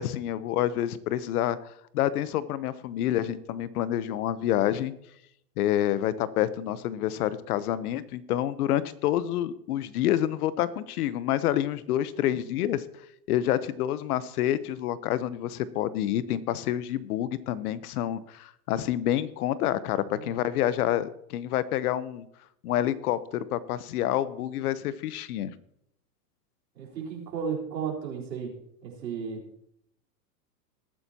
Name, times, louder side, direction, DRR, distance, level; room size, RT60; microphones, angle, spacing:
voice 1, 0.0-1.6 1.9-4.9 5.6-12.8 13.3-22.2 22.6-25.5, left 12 dB, 60° left, 16 dB, 0.9 m, -28 dB
voice 2, 26.7-28.5 28.8-29.4, right 6 dB, 90° right, -1 dB, 4.3 m, -34 dB
19.5 x 9.3 x 2.9 m, 0.74 s
hypercardioid pair, 135°, 50 cm